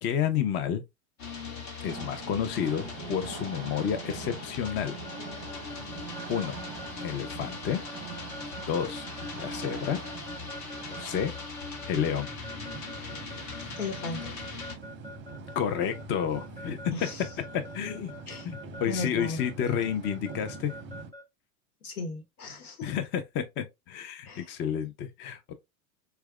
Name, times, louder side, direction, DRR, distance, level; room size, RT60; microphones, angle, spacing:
voice 1, 0.0-0.8 1.8-5.0 6.3-6.6 7.0-7.8 8.7-9.1 9.4-10.0 10.9-11.3 11.9-12.3 15.6-16.8 17.7-18.1 18.4-20.7 22.8-25.5, left 8 dB, 25° left, 0.4 m, -30 dB
sound 1, 1.2-14.7, left 4 dB, 55° left, 1.3 m, -40 dB
sound 2, 1.9-21.1, right 5 dB, 25° right, 0.6 m, -44 dB
Keyboard (musical) / Alarm, 4.6-21.2, left 1 dB, 10° left, 1.1 m, -45 dB
voice 2, 13.8-14.3 16.9-17.3 18.3-18.5 18.9-19.4 21.8-22.9 24.2-24.5, left 3 dB, 85° left, 1.1 m, -36 dB
4.5 x 2.2 x 2.3 m
hypercardioid pair, 100°, 43 cm